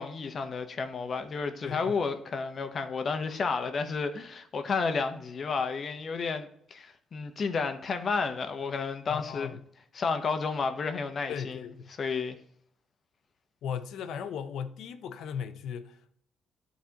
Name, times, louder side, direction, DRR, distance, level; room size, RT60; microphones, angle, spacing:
voice 1, 0.0-9.5 9.9-11.6 12.0-12.4, left 4 dB, 50° left, 0.9 m, -31 dB
voice 2, 1.6-2.0 9.1-9.6 11.3-11.9 13.6-16.2, left 7 dB, 80° left, 0.6 m, -37 dB
11.5 x 4.1 x 2.9 m
cardioid pair, 90°, 0 cm